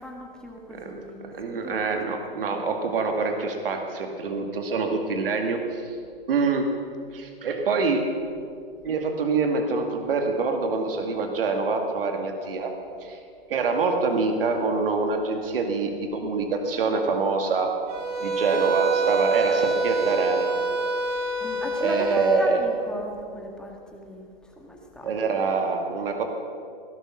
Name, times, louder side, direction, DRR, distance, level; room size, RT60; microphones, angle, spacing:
voice 1, 0.0-1.2 1.5-1.8 2.3-2.7 21.4-24.2 24.6-25.1, equal, 5° left, 0 dB, 1.9 m, -36 dB
voice 2, 0.7-5.8 6.3-6.7 7.1-8.1 8.8-12.7 13.0-13.2 13.5-17.8 18.2-20.6 21.8-22.6 25.0-26.2, right 4 dB, 70° right, 4 dB, 2.1 m, -25 dB
sound 1, 17.9-22.5, right 3 dB, 40° right, 2.8 m, -26 dB
17.0 x 11.5 x 6.4 m, 2.4 s
hypercardioid pair, 140°, 29 cm